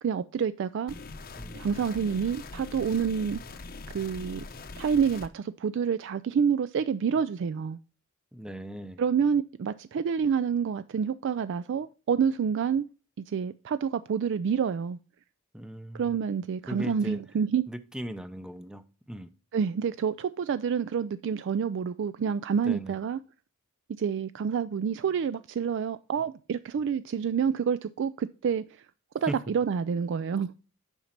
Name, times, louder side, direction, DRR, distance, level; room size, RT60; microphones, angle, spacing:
voice 1, 0.0-0.9 1.5-3.4 3.9-4.4 4.8-7.8 9.0-12.8 13.3-15.0 15.9-17.6 19.5-23.2 24.0-28.6 29.1-30.6, right 7 dB, 55° right, 0.3 m, -28 dB
sound 1, 0.9-5.3, left 3 dB, 45° left, 0.7 m, -42 dB
voice 2, 1.3-1.9 8.3-9.0 15.5-16.2 16.7-17.2 17.7-19.3 22.6-23.0 29.3-29.4, right 1 dB, 5° right, 0.5 m, -38 dB
7.2 x 5.2 x 5.8 m
head